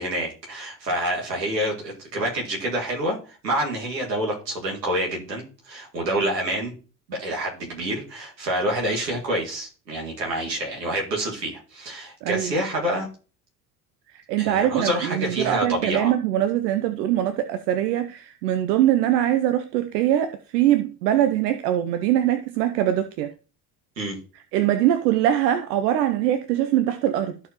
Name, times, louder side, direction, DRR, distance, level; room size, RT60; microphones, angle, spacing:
voice 1, 0.0-6.7 7.1-13.1 14.4-16.1 24.0-24.2, right 1 dB, 90° right, 2.1 m, -27 dB
voice 2, 12.2-12.5 14.1-23.3 24.5-27.4, right 12 dB, 75° right, 0.7 m, -22 dB
13.0 x 4.5 x 3.0 m
hypercardioid pair, 60°, 48 cm